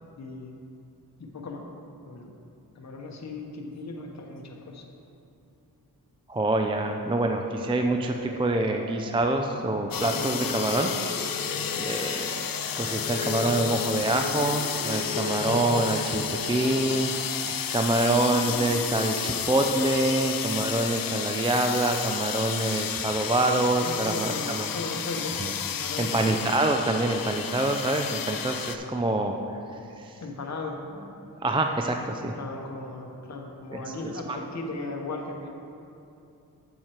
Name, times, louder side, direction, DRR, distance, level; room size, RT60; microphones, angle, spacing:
voice 1, 0.2-0.5 1.2-1.6 2.1-2.3 2.8-4.8 23.8-25.4 25.6-26.2 30.2-30.8 32.2-35.5, left 2 dB, 45° left, 1 dB, 0.9 m, -37 dB
sound 1, 3.9-4.0 4.3-4.4 4.7-4.8 9.0-16.7, left 7 dB, 80° left, 0.9 m, -37 dB
voice 2, 6.3-11.5 11.8-12.3 12.8-24.7 25.4-25.5 26.0-29.4 31.4-32.3 33.7-33.9 34.3-34.4, right 2 dB, 15° right, 4 dB, 0.4 m, -26 dB
sound 2, 7.2-23.6, left 1 dB, 35° right, 1.7 m, -42 dB
sound 3, 9.9-28.8, left 8 dB, 60° left, 0.5 m, -32 dB
7.5 x 7.5 x 4.4 m, 2.7 s
wide cardioid pair, 75°, 39 cm